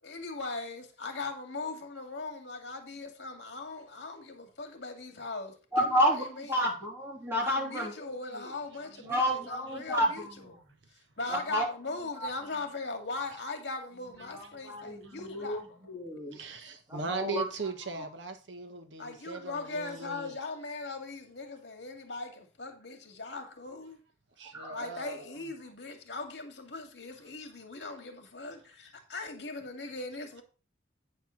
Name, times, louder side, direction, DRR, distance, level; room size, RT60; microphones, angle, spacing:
voice 1, 0.0-6.6 7.4-10.3 11.2-15.8 16.4-16.5 19.0-24.0 24.7-30.4, left 3 dB, 70° left, 2.1 m, -40 dB
voice 2, 5.7-7.9 8.4-8.5 9.0-10.6 11.3-11.7 14.3-15.6 15.9-16.4 16.9-17.5 17.8-18.1 24.5-24.8, equal, 15° right, 2.9 m, -30 dB
voice 3, 16.9-20.3 24.6-25.2, right 4 dB, 80° right, 1.3 m, -38 dB
9.2 x 4.4 x 6.3 m
head